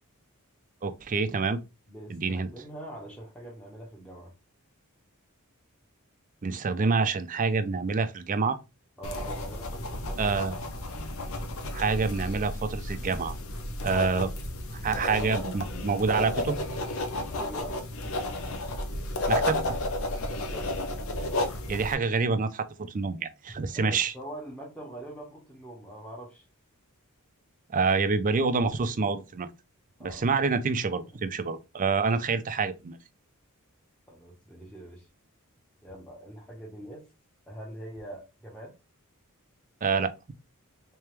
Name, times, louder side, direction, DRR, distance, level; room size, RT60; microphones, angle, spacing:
voice 1, 0.8-1.6 2.1-2.5 6.4-8.6 10.2-10.6 11.7-13.4 13.8-14.3 14.7-16.6 19.3-19.6 21.7-24.1 27.7-29.5 30.0-33.0 39.8-40.1, right 4 dB, 35° right, 0.4 m, -27 dB
voice 2, 1.9-4.3 9.0-10.3 13.8-14.1 17.3-17.8 20.3-20.7 23.7-26.5 30.0-30.2 30.9-31.0 34.1-35.1 35.8-37.1 37.5-38.7, right 1 dB, 5° left, 0.9 m, -43 dB
sound 1, 9.0-21.9, left 1 dB, 65° left, 0.8 m, -32 dB
3.4 x 3.3 x 3.2 m
head